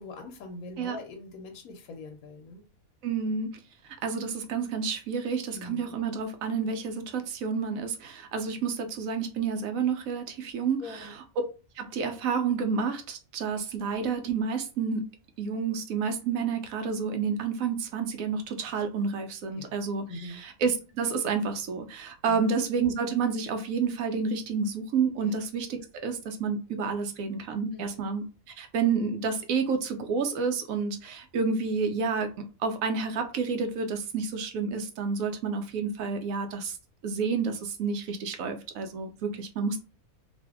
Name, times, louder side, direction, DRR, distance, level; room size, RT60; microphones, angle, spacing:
voice 1, 0.0-2.7 5.5-6.0 10.8-11.2 19.5-19.8 20.1-20.4 22.3-22.4 25.2-25.4 27.7-28.0, left 2 dB, 85° left, 4 dB, 1.1 m, -42 dB
voice 2, 3.0-3.6 3.8-11.1 11.8-15.1 15.4-28.2 28.6-32.3 32.6-36.8 37.0-39.8, right 5 dB, 75° right, 6 dB, 1.0 m, -30 dB
2.6 x 2.5 x 3.4 m, 0.33 s
omnidirectional pair, 1.5 m